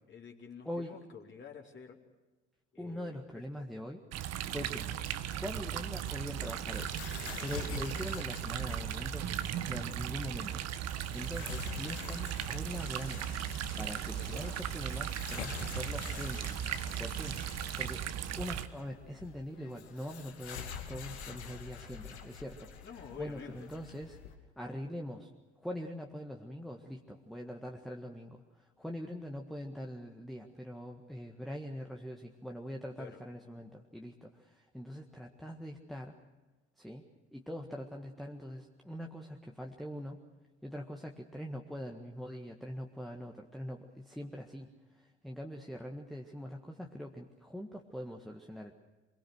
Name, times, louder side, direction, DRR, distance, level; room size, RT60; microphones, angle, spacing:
voice 1, 0.1-2.0 2.7-3.6 4.5-4.7 7.6-7.7 9.7-10.0 14.1-14.6 22.8-23.7 33.0-33.2, left 7 dB, 35° left, -1 dB, 3.6 m, -49 dB
voice 2, 0.6-1.0 2.8-4.0 4.5-4.9 5.3-6.9 7.4-9.3 9.7-13.3 13.8-17.4 17.8-18.0 18.4-22.7 23.2-24.2 24.6-25.3 25.6-36.1 36.8-37.0 37.3-40.2 40.6-44.7 44.9-48.7, equal, ahead, 2 dB, 1.7 m, -43 dB
sound 1, 4.1-18.7, right 10 dB, 50° right, 1.3 m, -37 dB
sound 2, 6.2-24.3, left 7 dB, 80° left, 2.3 m, -47 dB
sound 3, 12.8-18.0, left 8 dB, 55° left, 3.0 m, -54 dB
25.0 x 22.5 x 6.5 m, 1.2 s
figure-of-eight pair, 65°, 34 cm